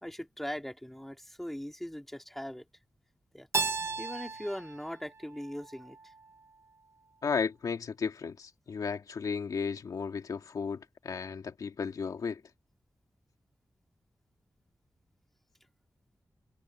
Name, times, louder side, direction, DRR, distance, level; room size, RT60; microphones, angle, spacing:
voice 1, 0.0-2.6 3.3-3.5 4.0-6.1, equal, 5° left, 3.4 m, -40 dB
Keyboard (musical), 3.5-6.3, right 4 dB, 45° right, 1.3 m, -36 dB
voice 2, 7.2-12.4, left 5 dB, 80° left, 2.2 m, -34 dB
wide cardioid pair, 160°, 6 cm